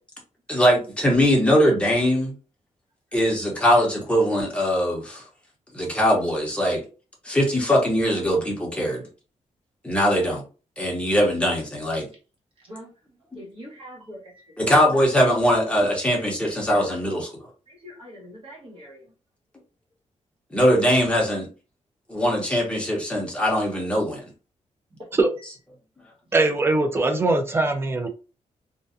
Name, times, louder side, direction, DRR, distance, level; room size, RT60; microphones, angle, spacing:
voice 1, 0.5-2.3 3.1-5.2 5.7-6.8 7.2-9.0 9.8-10.4 10.8-12.1 14.6-17.3 20.5-21.5 22.1-24.2, equal, 10° left, -2 dB, 0.8 m, -21 dB
voice 2, 13.4-14.8 17.7-19.0 25.1-25.2, equal, 45° right, -4 dB, 1.3 m, -43 dB
voice 3, 26.3-28.1, right 2 dB, 20° right, 5 dB, 0.4 m, -21 dB
2.5 x 2.2 x 2.5 m, 0.34 s
wide cardioid pair, 155°, 12 cm